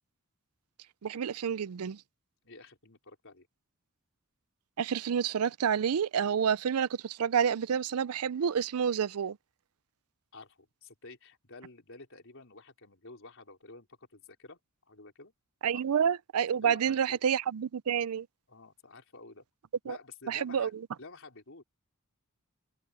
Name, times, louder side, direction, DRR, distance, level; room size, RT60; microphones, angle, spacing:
voice 1, 1.0-2.0 4.8-9.4 15.6-18.3 19.9-20.0 20.3-20.7, right 7 dB, 85° right, 0.5 m, -29 dB
voice 2, 2.4-3.5 10.3-14.6 14.9-15.3 15.7-15.8 16.6-17.2 18.5-19.4 19.8-20.7 21.0-21.6, left 3 dB, 65° left, 4.5 m, -50 dB
head